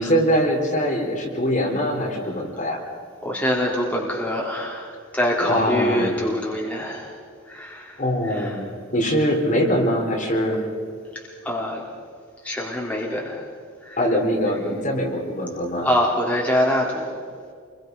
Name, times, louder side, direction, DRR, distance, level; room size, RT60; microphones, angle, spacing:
voice 1, 0.0-2.8 5.4-6.1 8.0-8.6 8.9-10.6 14.0-15.9, equal, 40° left, 0 dB, 4.1 m, -22 dB
voice 2, 3.2-7.1 7.5-8.0 8.3-8.6 11.1-11.9 12.4-13.4 13.8-14.0 15.8-17.2, equal, 5° left, -3 dB, 3.4 m, -25 dB
28.0 x 23.0 x 5.5 m, 2.1 s
head